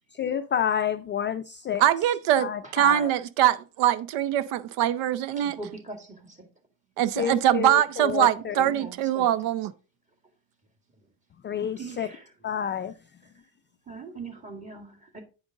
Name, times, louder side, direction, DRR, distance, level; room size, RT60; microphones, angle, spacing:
voice 1, 0.2-1.8 2.4-3.1 7.2-8.7 11.4-12.1 12.4-12.9, left 8 dB, 25° left, 0.3 m, -29 dB
voice 2, 1.8-5.6 7.0-9.7, right 11 dB, 75° right, 0.7 m, -23 dB
voice 3, 5.4-6.5 8.2-9.3 11.5-12.3 13.2-13.3 13.9-15.2, right 3 dB, 15° right, 2.1 m, -42 dB
9.5 x 5.1 x 3.7 m
cardioid pair, 115°, 45 cm